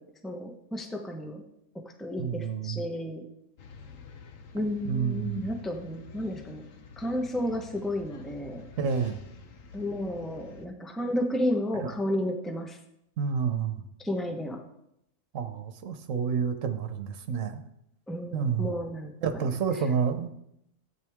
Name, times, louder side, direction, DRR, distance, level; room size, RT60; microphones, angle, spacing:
voice 1, 0.2-1.4 2.0-3.2 4.5-6.6 7.0-8.6 9.7-12.8 14.0-14.6 18.1-19.5, left 1 dB, ahead, 3 dB, 1.0 m, -32 dB
voice 2, 2.2-2.8 4.9-5.5 8.8-9.2 11.8-11.9 13.2-13.8 15.3-17.6 18.3-18.7 19.2-20.3, right 6 dB, 80° right, 9 dB, 1.3 m, -29 dB
sound 1, 3.6-10.7, left 4 dB, 80° left, 1.4 m, -48 dB
14.0 x 9.1 x 3.6 m, 0.78 s
omnidirectional pair, 1.3 m